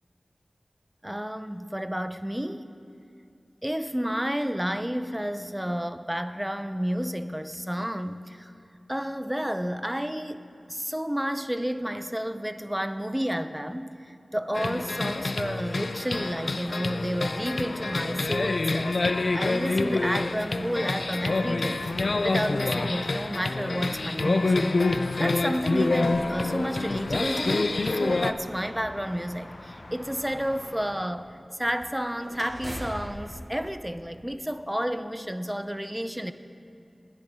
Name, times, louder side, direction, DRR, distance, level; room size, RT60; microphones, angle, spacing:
voice 1, 1.0-2.7 3.6-8.5 8.9-21.8 22.2-24.9 25.2-36.3, equal, 10° right, 11 dB, 0.5 m, -31 dB
sound 1, 14.5-28.3, left 3 dB, 65° left, 0.4 m, -27 dB
sound 2, 16.9-31.1, left 1 dB, 40° left, 0.8 m, -47 dB
sound 3, 21.0-22.9 23.7-23.8 25.6-28.2 31.6-34.7, equal, 25° right, 2.5 m, -44 dB
19.0 x 10.5 x 3.7 m, 2.6 s
wide cardioid pair, 65°, 0 cm